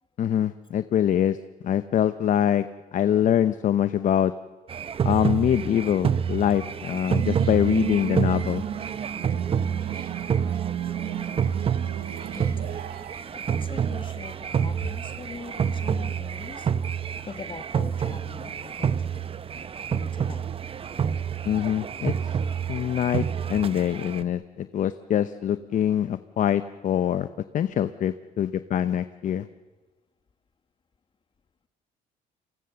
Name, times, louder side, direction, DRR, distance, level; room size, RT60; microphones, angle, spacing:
voice 1, 0.2-1.4 1.6-2.6 2.9-4.3 5.0-8.6 21.5-22.3 22.7-27.3 27.5-29.5, left 10 dB, 50° left, 13 dB, 0.7 m, -24 dB
sound 1, 4.7-24.2, right 7 dB, 35° right, 0.7 m, -28 dB
sound 2, 6.9-13.2, right 11 dB, 60° right, 1.6 m, -34 dB
voice 2, 12.3-12.9 13.3-16.7 17.3-19.3 19.9-20.5, left 5 dB, 30° left, 8 dB, 1.5 m, -42 dB
28.5 x 24.0 x 6.9 m, 1.3 s
cardioid pair, 110°, 17 cm